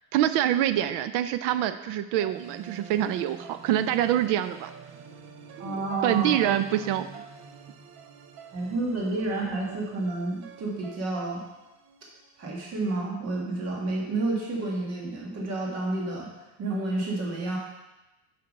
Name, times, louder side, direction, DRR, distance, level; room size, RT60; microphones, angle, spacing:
voice 1, 0.1-4.7 5.6-7.2, right 12 dB, 85° right, 12 dB, 0.5 m, -26 dB
sound 1, 2.2-12.5, right 6 dB, 65° right, 0.8 m, -47 dB
voice 2, 5.6-6.8 8.5-11.4 12.4-16.3 16.6-17.6, right 2 dB, 40° right, -2 dB, 1.7 m, -30 dB
6.6 x 5.9 x 5.2 m, 1.0 s
cardioid pair, 155°, 38 cm